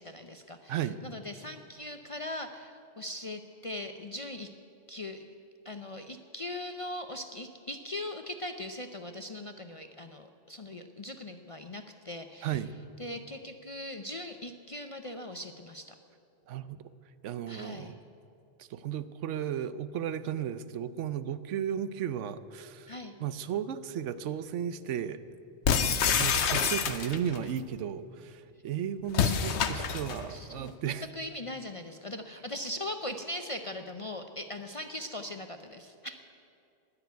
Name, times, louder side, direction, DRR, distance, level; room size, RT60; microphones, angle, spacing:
voice 1, 0.0-4.5 4.9-5.2 5.6-12.6 13.0-15.9 17.5-18.0 22.9-23.1 30.3-36.2, left 1 dB, 40° left, 7 dB, 0.5 m, -40 dB
voice 2, 0.7-1.0 12.4-12.7 16.5-16.8 17.2-17.9 18.6-22.9 23.2-25.2 25.9-31.1, right 9 dB, 80° right, 14 dB, 1.0 m, -34 dB
sound 1, 25.7-27.4 29.1-30.3, left 7 dB, 70° left, 1.1 m, -27 dB
19.5 x 6.9 x 9.2 m, 2.5 s
omnidirectional pair, 1.2 m